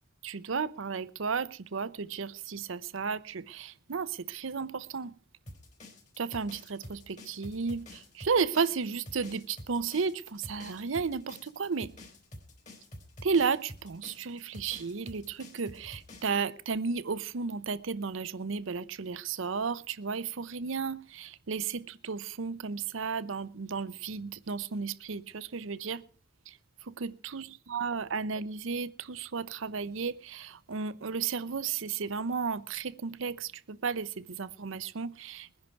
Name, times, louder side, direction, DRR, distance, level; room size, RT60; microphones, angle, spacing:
voice 1, 0.2-5.1 6.2-11.9 13.2-26.0 26.5-26.6 26.9-35.5, right 5 dB, 70° right, 0.6 m, -33 dB
sound 1, 5.5-16.4, left 1 dB, 35° left, 3.6 m, -48 dB
21.0 x 10.5 x 4.6 m
head